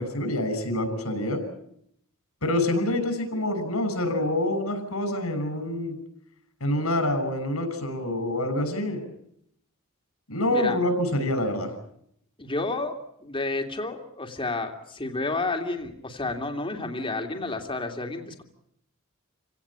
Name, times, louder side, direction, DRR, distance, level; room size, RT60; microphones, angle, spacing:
voice 1, 0.0-1.4 2.4-6.0 6.6-9.1 10.3-11.7, left 1 dB, 85° left, 8 dB, 6.5 m, -26 dB
voice 2, 12.4-18.4, left 2 dB, 25° left, 4 dB, 2.7 m, -31 dB
29.0 x 17.5 x 8.7 m, 0.73 s
head